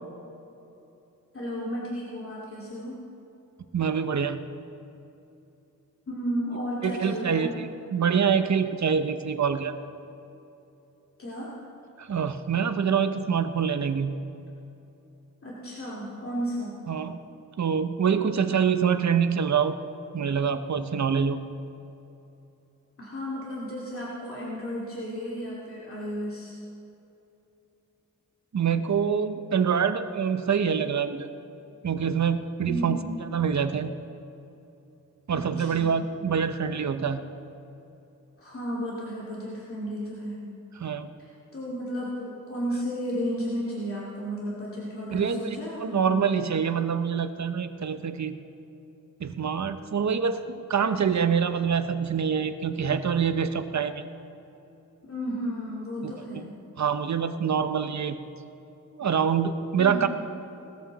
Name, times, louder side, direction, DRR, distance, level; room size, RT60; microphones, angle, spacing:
voice 1, 1.3-3.0 6.1-7.5 11.2-11.5 15.4-16.8 23.0-26.6 32.7-33.2 35.3-35.9 38.4-40.4 41.2-46.3 55.1-56.5 59.8-60.1, equal, 45° left, -6 dB, 2.7 m, -33 dB
voice 2, 3.7-4.4 6.8-9.7 12.0-14.1 16.9-17.2 17.6-19.8 20.1-21.4 28.5-31.3 31.8-33.0 33.3-33.9 35.3-37.2 40.8-41.1 45.1-48.4 49.2-54.0 56.0-56.5 56.8-58.2 59.0-60.1, right 7 dB, 65° right, 10 dB, 0.9 m, -25 dB
20.0 x 13.5 x 4.1 m, 2.9 s
wide cardioid pair, 85°, 31 cm